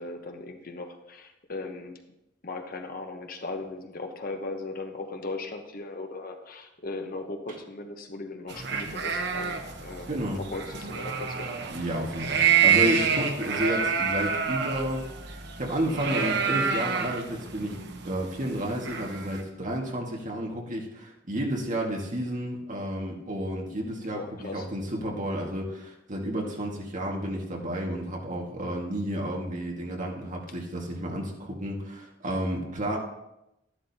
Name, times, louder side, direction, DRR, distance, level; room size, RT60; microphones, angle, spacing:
voice 1, 0.0-2.0 2.4-11.6 24.1-24.7, left 2 dB, 50° left, 5 dB, 1.1 m, -38 dB
sound 1, 8.5-19.4, right 7 dB, 65° right, 1.0 m, -28 dB
voice 2, 10.1-10.4 11.7-15.0 15.6-17.8 18.0-24.2 24.5-33.0, right 1 dB, 45° right, -1 dB, 1.8 m, -31 dB
12.0 x 11.0 x 2.9 m, 0.88 s
head